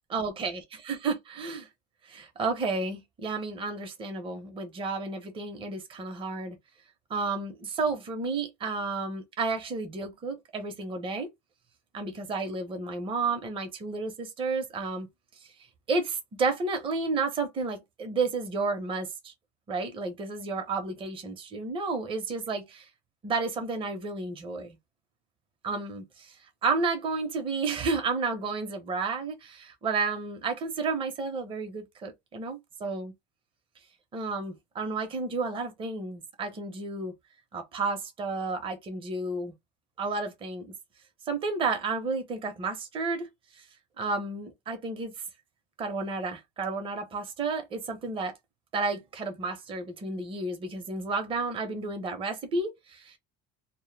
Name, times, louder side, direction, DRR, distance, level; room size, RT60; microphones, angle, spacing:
voice 1, 0.1-1.7 2.1-6.6 7.1-11.3 11.9-15.1 15.9-19.3 19.7-22.8 23.2-24.8 25.6-26.3 26.6-33.1 34.1-37.1 37.5-39.5 40.0-40.7 41.3-43.3 44.0-45.1 45.8-48.3 48.7-53.2, right 4 dB, 25° right, 0.6 m, -31 dB
2.1 x 2.0 x 3.2 m
cardioid pair, 140°, 19 cm